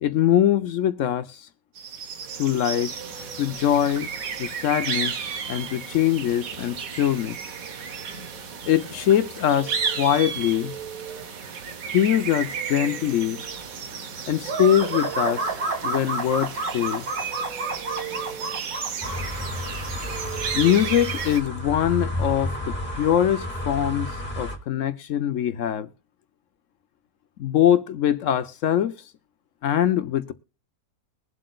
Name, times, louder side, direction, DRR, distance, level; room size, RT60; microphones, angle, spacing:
voice 1, 0.0-1.5 2.4-2.9 3.4-4.1 4.4-5.2 5.5-7.4 8.7-10.7 11.9-13.4 14.3-17.1 20.5-25.9 27.4-28.9 29.6-30.3, left 10 dB, 65° left, 0.8 m, -23 dB
sound 1, 1.8-21.4, right 6 dB, 55° right, 1.4 m, -33 dB
sound 2, 14.4-19.2, right 3 dB, 85° right, 2.7 m, -29 dB
sound 3, 19.0-24.6, left 1 dB, 5° left, 2.3 m, -31 dB
22.0 x 7.5 x 2.4 m
omnidirectional pair, 1.9 m